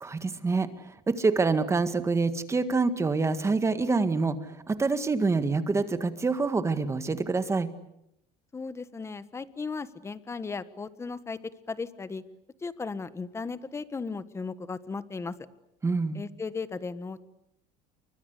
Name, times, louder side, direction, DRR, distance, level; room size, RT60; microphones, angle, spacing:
voice 1, 0.0-0.7 1.1-7.7 15.8-16.2, right 4 dB, 15° right, 10 dB, 1.8 m, -26 dB
voice 2, 8.5-12.2 12.6-15.3 16.1-17.2, left 4 dB, 15° left, 13 dB, 1.4 m, -36 dB
29.5 x 24.0 x 8.3 m, 0.80 s
cardioid pair, 150°, 17 cm